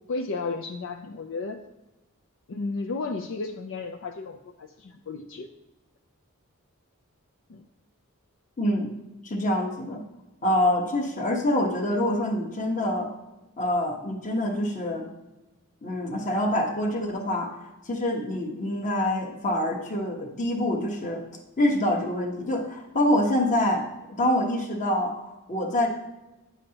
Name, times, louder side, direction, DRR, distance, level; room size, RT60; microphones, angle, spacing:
voice 1, 0.1-1.6 2.5-5.5 7.5-7.6, left 3 dB, 60° left, 6 dB, 0.5 m, -33 dB
voice 2, 8.6-8.9 9.2-10.0 10.4-13.1 13.6-15.0 15.8-21.2 21.6-23.9 24.2-25.9, left 1 dB, 35° left, 2 dB, 1.2 m, -26 dB
9.6 x 7.0 x 2.9 m, 1.0 s
head